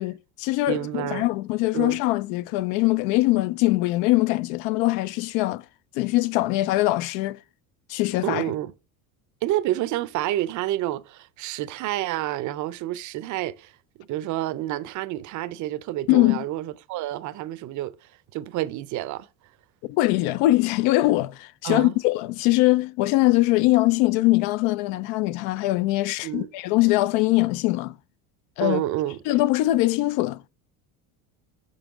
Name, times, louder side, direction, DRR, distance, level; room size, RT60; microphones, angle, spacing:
voice 1, 0.0-5.6 5.9-7.4 7.9-8.5 16.1-16.4 19.9-28.0 28.6-28.8 29.3-30.4, left 18 dB, 75° left, 0.5 m, -22 dB
voice 2, 0.7-1.3 1.7-2.0 8.2-8.7 9.4-13.7 14.0-17.9 18.3-19.3 21.6-21.9 26.2-26.5 28.6-29.2, right 14 dB, 45° right, 0.5 m, -29 dB
5.5 x 5.2 x 3.5 m
supercardioid pair, 115°, 41 cm